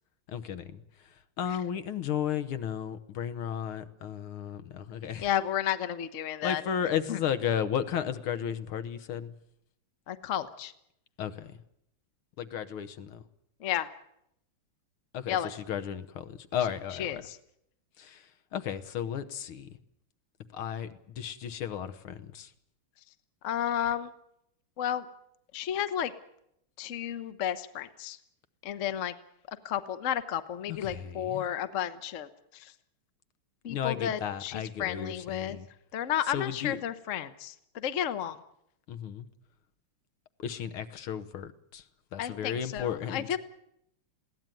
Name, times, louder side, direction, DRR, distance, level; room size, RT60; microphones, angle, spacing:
voice 1, 0.3-5.3 6.4-9.4 11.2-11.6 12.4-13.2 15.1-17.3 18.0-19.8 20.5-22.5 30.7-31.5 33.7-35.7 36.3-36.8 38.9-39.3 40.4-41.9 42.1-43.3, left 8 dB, 75° left, 1.9 m, -34 dB
voice 2, 5.2-6.6 7.1-7.2 10.1-10.7 13.6-13.9 15.3-15.5 17.0-17.4 23.4-24.1 24.8-25.1 25.5-26.1 26.8-28.2 28.6-29.1 29.5-32.7 33.6-35.6 35.9-38.4 42.2-43.4, left 10 dB, 45° left, 1.1 m, -32 dB
21.5 x 16.5 x 9.2 m
omnidirectional pair, 2.4 m